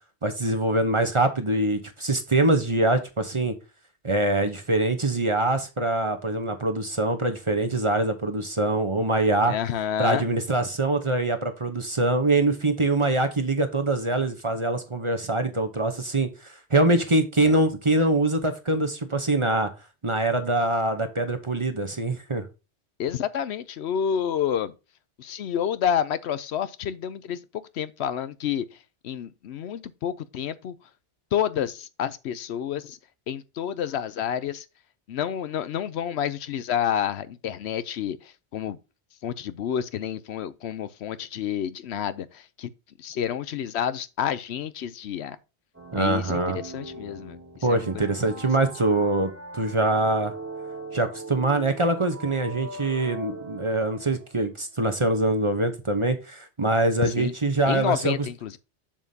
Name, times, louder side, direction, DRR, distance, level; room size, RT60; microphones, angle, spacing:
voice 1, 0.2-3.6 4.0-9.5 10.0-19.7 20.0-22.5 45.9-46.6 47.6-50.3 50.9-58.1, right 2 dB, 30° right, 0.9 m, -24 dB
voice 2, 9.5-10.3 17.4-17.6 23.0-24.7 25.2-28.7 29.0-30.7 31.3-33.0 33.3-34.7 35.1-38.8 39.2-42.7 43.0-45.4 46.0-47.4 47.7-48.2 57.0-57.3 57.7-58.6, left 9 dB, 70° left, 0.8 m, -29 dB
sound 1, 45.7-54.4, right 3 dB, 10° right, 1.8 m, -40 dB
7.3 x 7.0 x 2.8 m
omnidirectional pair, 1.2 m